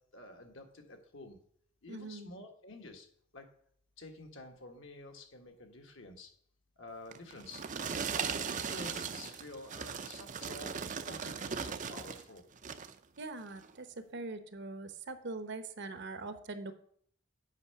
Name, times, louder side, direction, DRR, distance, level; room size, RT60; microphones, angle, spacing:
voice 1, 0.0-1.4 1.8-3.1 3.3-3.5 4.0-6.3 6.8-7.6 8.1-12.4, left 2 dB, 60° left, 4 dB, 1.6 m, -50 dB
voice 2, 1.9-2.3 13.2-16.7, right 3 dB, 55° right, 9 dB, 0.9 m, -42 dB
sound 1, 7.1-12.2 12.6-13.0 13.6-13.7, right 6 dB, 35° right, 0.6 m, -38 dB
8.3 x 5.5 x 6.8 m, 0.63 s
head